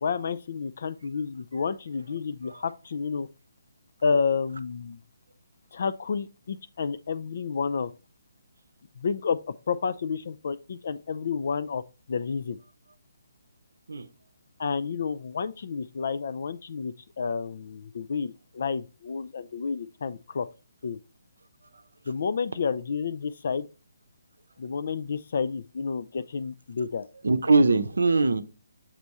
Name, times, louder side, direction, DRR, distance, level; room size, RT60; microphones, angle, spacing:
voice 1, 0.0-3.3 4.0-5.0 5.7-7.9 9.0-11.8 12.1-12.6 14.6-20.5 20.8-21.0 22.1-23.7 24.6-27.1, left 5 dB, 55° left, 0.3 m, -30 dB
voice 2, 27.2-28.4, right 3 dB, 75° right, 0.6 m, -21 dB
7.2 x 3.4 x 4.1 m
figure-of-eight pair, 145°, 0 cm